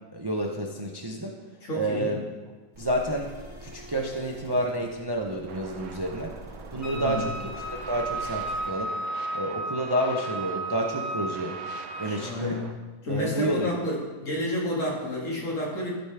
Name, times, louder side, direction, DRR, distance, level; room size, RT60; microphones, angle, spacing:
voice 1, 0.1-1.3 1.7-2.2 2.8-3.3 3.6-6.3 6.7-7.3 7.7-8.9 9.3-11.6 12.0-12.6 13.1-13.7, right 1 dB, 40° right, 0 dB, 0.3 m, -29 dB
voice 2, 1.6-2.1 6.9-7.4 12.0-12.6 13.0-15.9, left 1 dB, 65° left, -4 dB, 2.2 m, -30 dB
sound 1, 2.7-8.7, right 1 dB, 65° right, 2.5 m, -45 dB
sound 2, 5.5-12.7, right 6 dB, 90° right, 1.1 m, -44 dB
Wind instrument woodwind instrument, 6.8-12.2, right 2 dB, 30° left, 0.9 m, -34 dB
12.5 x 4.9 x 3.4 m, 1.3 s
omnidirectional pair, 1.4 m